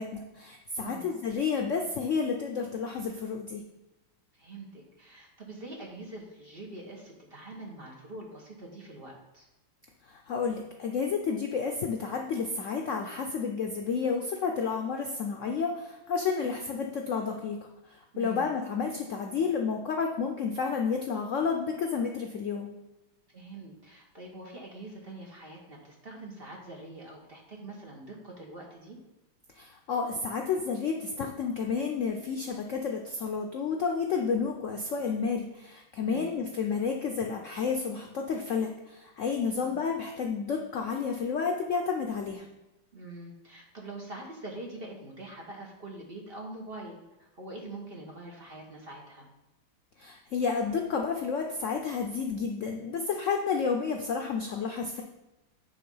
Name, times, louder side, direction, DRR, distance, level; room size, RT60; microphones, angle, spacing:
voice 1, 0.0-3.6 10.1-17.6 17.9-22.7 29.5-42.4 50.0-55.0, left 5 dB, 80° left, 2 dB, 0.6 m, -31 dB
voice 2, 0.8-1.1 4.3-9.5 18.1-18.5 23.3-29.0 36.0-36.3 39.6-39.7 42.9-49.3, right 2 dB, 35° right, -1 dB, 1.3 m, -44 dB
9.6 x 3.6 x 5.5 m, 0.98 s
omnidirectional pair, 2.2 m